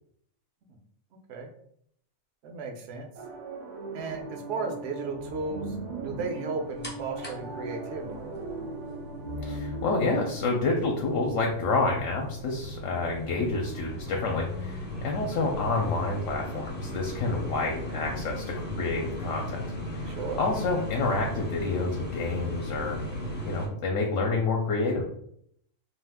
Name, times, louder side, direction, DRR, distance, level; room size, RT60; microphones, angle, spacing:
voice 1, 2.4-3.1 3.9-5.8 6.0-8.1 14.9-15.2 20.1-20.4, right 3 dB, 70° right, 2 dB, 0.8 m, -35 dB
sound 1, 3.2-10.0, right 2 dB, 85° right, 0.4 m, -38 dB
sound 2, 6.8-23.7, left 1 dB, 15° left, 0.3 m, -37 dB
voice 2, 9.4-19.6 19.9-23.0 23.4-25.0, left 3 dB, 70° left, 1 dB, 0.9 m, -28 dB
2.6 x 2.3 x 3.4 m, 0.68 s
omnidirectional pair, 1.4 m